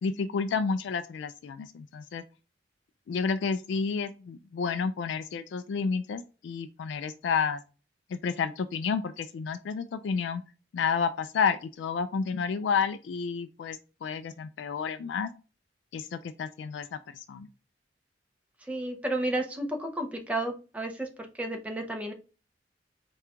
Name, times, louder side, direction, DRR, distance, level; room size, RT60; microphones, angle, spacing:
voice 1, 0.0-2.2 3.1-7.6 8.1-10.4 10.7-15.3 15.9-16.9 17.1-17.5, left 5 dB, 80° left, 10 dB, 0.3 m, -30 dB
voice 2, 18.6-22.1, right 1 dB, 10° right, 2 dB, 0.6 m, -32 dB
4.4 x 2.3 x 3.6 m, 0.33 s
head